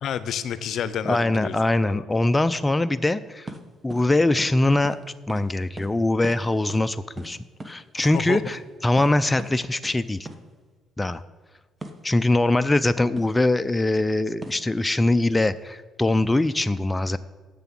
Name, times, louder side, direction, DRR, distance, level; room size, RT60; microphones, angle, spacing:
voice 1, 0.0-1.5 1.9-2.0 8.0-8.4, left 9 dB, 65° left, 14 dB, 0.6 m, -30 dB
voice 2, 1.0-3.5 3.8-5.0 5.3-7.4 7.6-10.3 11.0-11.2 12.0-17.2, left 2 dB, 15° left, 12 dB, 0.4 m, -22 dB
sound 1, 3.5-3.6 3.9-4.1 4.4-4.5 4.8-5.0 5.3-5.4 5.8-5.9 6.2-6.4 6.7-6.9 7.2-8.1 8.5-8.6 9.0-9.1 9.4-9.5 9.8-10.0 10.2-10.4 11.8-12.0 13.2-13.4 14.4-14.7, right 2 dB, 25° right, 1.1 m, -38 dB
6.9 x 6.9 x 7.4 m, 1.4 s
supercardioid pair, 80°, 0 cm